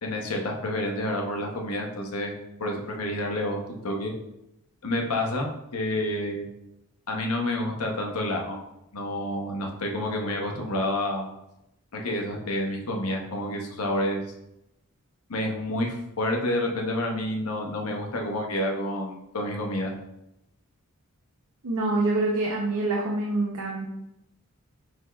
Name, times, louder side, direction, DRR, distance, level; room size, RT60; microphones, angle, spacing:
voice 1, 0.0-2.3 2.6-4.1 4.8-6.5 7.1-8.6 8.9-11.3 11.9-14.2 15.3-19.9, left 1 dB, 80° left, 1 dB, 0.8 m, -29 dB
voice 2, 21.6-23.9, right 2 dB, 80° right, -2 dB, 0.7 m, -26 dB
6.4 x 3.4 x 2.3 m, 0.86 s
head